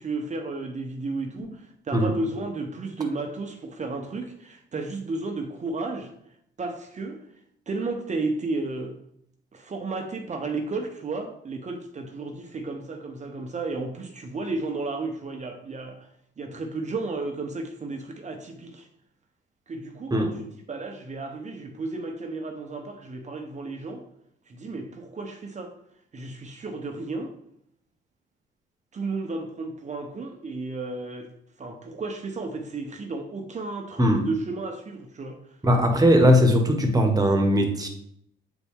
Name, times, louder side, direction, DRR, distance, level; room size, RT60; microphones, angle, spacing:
voice 1, 0.0-6.1 6.6-7.3 7.7-9.0 9.5-16.1 16.4-18.9 19.7-24.0 24.5-25.8 26.1-27.3 28.9-31.3 31.6-35.6, right 3 dB, 35° right, 5 dB, 0.9 m, -33 dB
voice 2, 35.6-37.9, equal, 20° right, 4 dB, 1.4 m, -19 dB
8.0 x 4.1 x 3.6 m, 0.72 s
cardioid pair, 90°, 20 cm